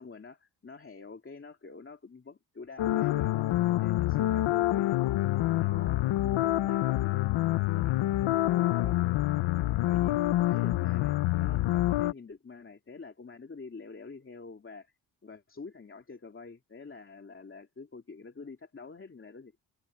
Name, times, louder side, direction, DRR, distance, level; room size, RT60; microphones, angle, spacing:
voice 1, 0.0-9.0 9.9-14.9 15.2-19.6, left 4 dB, 25° left, 2.8 m, -47 dB
sound 1, 2.8-12.1, left 15 dB, 80° left, 0.8 m, -27 dB
open air
cardioid pair, 120°, 46 cm